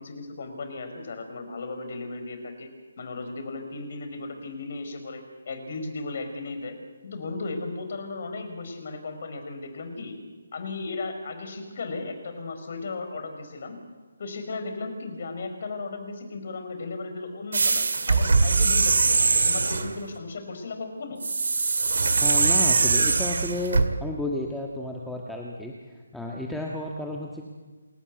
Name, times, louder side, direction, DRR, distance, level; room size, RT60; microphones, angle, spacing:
voice 1, 0.0-2.7 3.0-6.8 7.0-10.1 10.5-13.8 14.2-21.2, left 3 dB, 50° left, 7 dB, 4.7 m, -36 dB
sound 1, 17.5-19.9 21.2-23.9, right 4 dB, 65° right, 2.1 m, -22 dB
voice 2, 22.2-27.4, left 2 dB, ahead, -2 dB, 1.6 m, -32 dB
28.0 x 13.5 x 8.2 m, 1.3 s
figure-of-eight pair, 145°, 0 cm